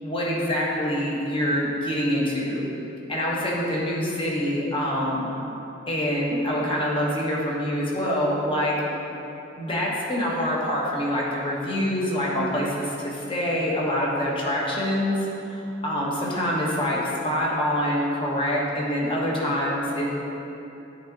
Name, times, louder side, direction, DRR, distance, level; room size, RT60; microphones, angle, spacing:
voice 1, 0.0-2.6 3.1-5.3 5.9-8.8 9.6-20.1, equal, 25° left, -4 dB, 1.1 m, -25 dB
9.4 x 3.6 x 3.9 m, 2.9 s
head